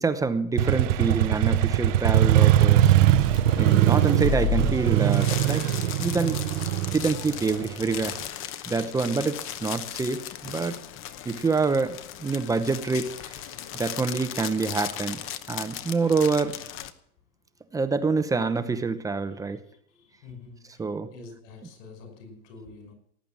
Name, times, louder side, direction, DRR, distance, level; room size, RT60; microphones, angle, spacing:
voice 1, 0.0-2.9 3.6-5.6 6.0-6.4 6.9-8.2 8.7-10.8 11.3-13.3 13.7-15.2 15.5-16.6 17.7-19.6 20.8-21.1, right 4 dB, 10° right, 10 dB, 0.7 m, -26 dB
Motorcycle, 0.6-8.2, right 13 dB, 60° right, 1.0 m, -21 dB
sound 1, 3.2-16.9, left 7 dB, 30° left, 0.9 m, -35 dB
voice 2, 19.4-22.9, left 3 dB, 55° left, 5 dB, 5.7 m, -47 dB
18.0 x 8.6 x 7.4 m, 0.67 s
supercardioid pair, 140°, 43 cm